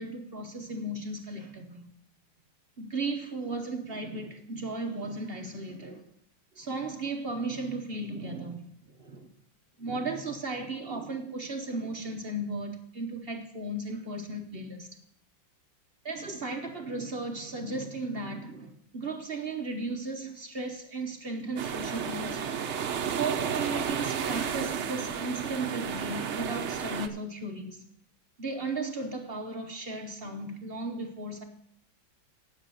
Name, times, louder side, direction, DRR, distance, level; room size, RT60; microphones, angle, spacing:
voice 1, 0.0-1.9 2.8-6.1 6.5-9.3 9.8-14.9 16.0-22.4 23.1-27.9 28.4-31.4, right 2 dB, 40° right, 0.9 m, -35 dB
sound 1, 21.6-27.1, right 7 dB, 75° right, 0.6 m, -32 dB
8.9 x 6.4 x 6.9 m
omnidirectional pair, 2.1 m